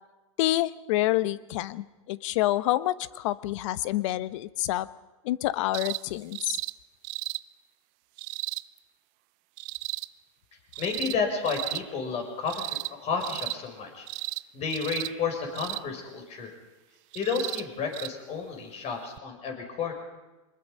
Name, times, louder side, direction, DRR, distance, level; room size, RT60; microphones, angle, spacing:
voice 1, 0.4-4.9 5.2-6.6, left 15 dB, 65° left, 16 dB, 1.0 m, -27 dB
sound 1, 5.7-6.0 6.3-6.7 7.0-7.4 8.2-8.6 9.6-10.1 10.7-11.2 11.5-11.8 12.5-12.9 13.2-13.6 14.1-14.4 14.7-15.1 15.6-15.8 17.1-17.6 17.9-18.1 19.2-19.3, right 23 dB, 45° right, 0.6 m, -34 dB
voice 2, 10.8-14.1 14.5-16.5 17.1-19.9, left 5 dB, 40° left, 3 dB, 6.3 m, -31 dB
24.0 x 21.0 x 5.5 m, 1.1 s
hypercardioid pair, 120°, 17 cm